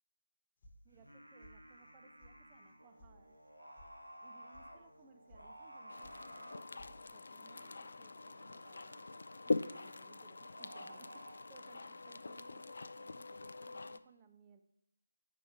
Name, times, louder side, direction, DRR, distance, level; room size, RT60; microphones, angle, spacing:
sound 1, 0.6-1.1 1.4-2.3 2.7-3.1 3.4-3.9 4.2-4.6 5.0-5.4 5.7-6.2 6.4-6.9, equal, 25° left, 1.2 m, -60 dB
voice 1, 0.8-3.4 4.2-9.0 9.5-14.6, right 6 dB, 15° right, 6 dB, 0.4 m, -64 dB
Singing, 0.9-11.3, equal, 85° right, 1.5 m, -56 dB
sound 2, 5.9-14.0, left 3 dB, 55° left, 0.3 m, -43 dB
5.1 x 5.0 x 5.9 m, 0.81 s
figure-of-eight pair, 160°, 0 cm